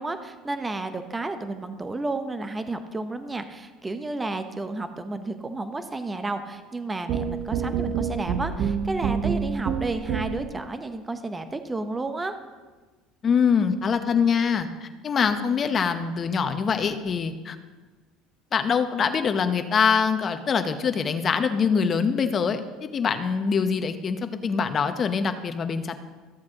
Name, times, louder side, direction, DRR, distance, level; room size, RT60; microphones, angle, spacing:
voice 1, 0.0-12.3, right 2 dB, 15° right, 8 dB, 0.8 m, -32 dB
sound 1, 7.1-10.6, right 7 dB, 65° right, 0.7 m, -27 dB
voice 2, 13.2-17.6 18.5-26.0, left 6 dB, 35° left, 8 dB, 0.8 m, -24 dB
14.0 x 7.3 x 2.9 m, 1.3 s
supercardioid pair, 95°, 0 cm